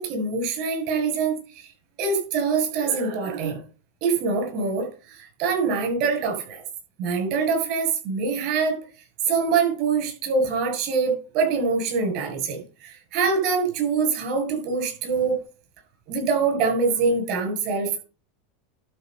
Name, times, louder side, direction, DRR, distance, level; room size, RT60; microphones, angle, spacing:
voice 1, 0.0-1.4 2.0-3.6 4.0-4.9 5.4-6.6 7.0-8.8 9.3-15.4 16.1-18.0, right 5 dB, 55° right, 3 dB, 7.0 m, -24 dB
12.0 x 4.9 x 6.7 m, 0.35 s
supercardioid pair, 125°, 0 cm